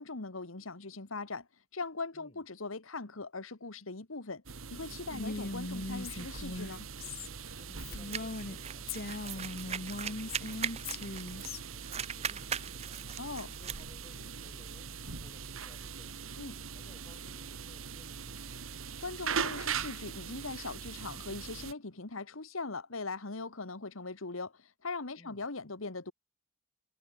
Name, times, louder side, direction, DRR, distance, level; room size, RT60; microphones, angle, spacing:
voice 1, 0.0-1.5 1.7-4.4 4.7-6.9 13.2-13.5 16.4-16.6 19.0-26.1, left 3 dB, 70° left, 1.7 m, -40 dB
voice 2, 2.1-2.4 5.1-5.4 7.6-16.4 16.7-18.6 25.2-25.5, left 1 dB, 30° left, 6.5 m, -60 dB
sound 1, 4.5-21.7, right 6 dB, 75° right, 1.6 m, -41 dB
Female speech woman speaking, 5.1-8.6 8.9-11.6, left 2 dB, 50° left, 1.4 m, -39 dB
sound 2, 8.1-11.6 11.8-13.8, right 8 dB, 30° right, 0.6 m, -39 dB
head